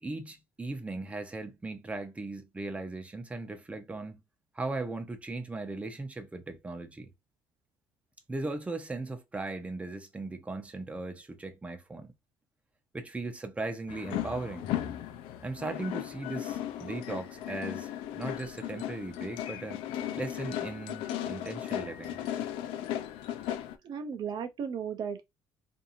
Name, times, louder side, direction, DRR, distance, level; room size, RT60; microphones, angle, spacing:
voice 1, 0.0-4.2 4.5-7.1 8.3-12.1 12.9-14.7 15.4-19.8 20.1-22.2, right 2 dB, 15° right, 0.7 m, -38 dB
sound 1, 13.9-23.8, left 11 dB, 80° left, 0.5 m, -36 dB
voice 2, 23.8-25.2, right 7 dB, 55° right, 0.6 m, -35 dB
2.7 x 2.6 x 2.6 m
supercardioid pair, 85°, 9 cm